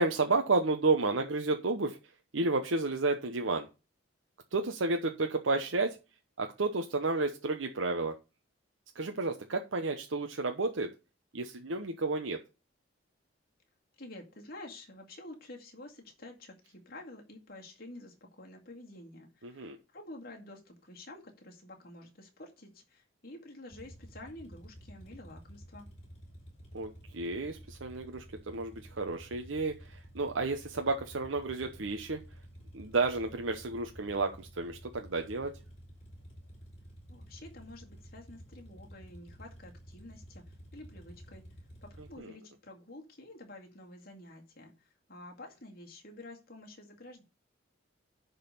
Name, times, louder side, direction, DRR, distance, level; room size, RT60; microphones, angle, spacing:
voice 1, 0.0-2.0 2.3-3.7 4.5-6.0 6.4-8.1 8.9-10.9 11.3-12.4 19.4-19.8 26.7-32.2 32.7-35.5 42.2-42.3, right 3 dB, 80° right, 4 dB, 0.9 m, -31 dB
voice 2, 14.0-25.9 37.1-41.4 41.8-47.2, left 1 dB, 50° left, 1 dB, 2.2 m, -49 dB
sound 1, 23.7-42.2, equal, 35° left, 4.5 m, -51 dB
10.5 x 4.0 x 6.9 m, 0.30 s
head